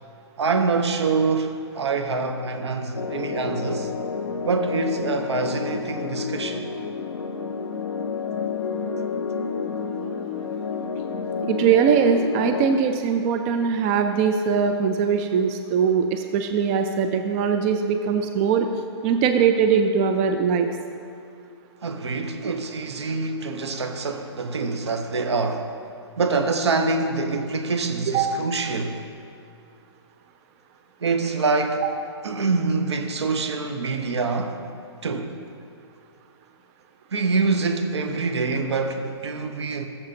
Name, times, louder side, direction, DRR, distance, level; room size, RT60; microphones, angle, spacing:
voice 1, 0.4-3.9 4.4-6.7 21.8-25.7 26.2-29.0 31.0-31.8 32.2-34.6 35.0-35.3 37.1-39.9, right 4 dB, 70° right, 0.9 m, -25 dB
sound 1, 2.9-12.8, left 5 dB, 70° left, 0.6 m, -30 dB
voice 2, 11.4-18.7 19.0-20.7 28.1-28.3, right 6 dB, 30° right, 0.4 m, -21 dB
16.0 x 7.1 x 2.8 m
figure-of-eight pair, 125°, 15 cm